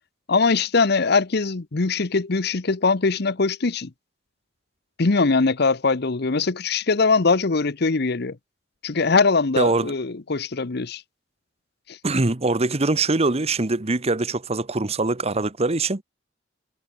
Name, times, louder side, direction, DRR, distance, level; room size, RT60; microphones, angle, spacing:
voice 1, 0.3-3.9 5.0-8.4 8.8-11.0 11.9-12.0, left 4 dB, 60° left, 0.9 m, -21 dB
voice 2, 9.6-9.9 12.0-16.0, right 3 dB, 35° right, 1.1 m, -23 dB
head